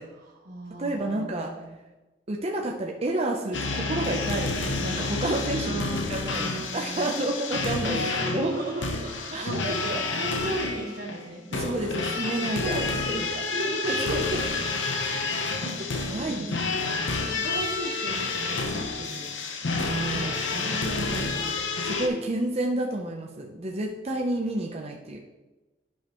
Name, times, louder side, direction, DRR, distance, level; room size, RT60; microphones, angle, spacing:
voice 1, 0.0-1.8 5.6-7.2 7.8-11.7 12.6-14.0 15.2-15.7 16.1-16.7 17.3-19.3 20.1-21.5, right 2 dB, 55° right, -4 dB, 1.3 m, -36 dB
voice 2, 0.8-1.5 2.3-8.5 9.3-10.0 11.5-12.8 13.3-13.4 13.9-14.4 15.0-16.5 16.8-17.1 19.7-20.7 21.8-25.2, right 1 dB, 35° right, 1 dB, 0.7 m, -30 dB
sound 1, 3.5-22.1, left 3 dB, 85° left, 0.9 m, -29 dB
11.5 x 5.3 x 3.0 m, 1.1 s
head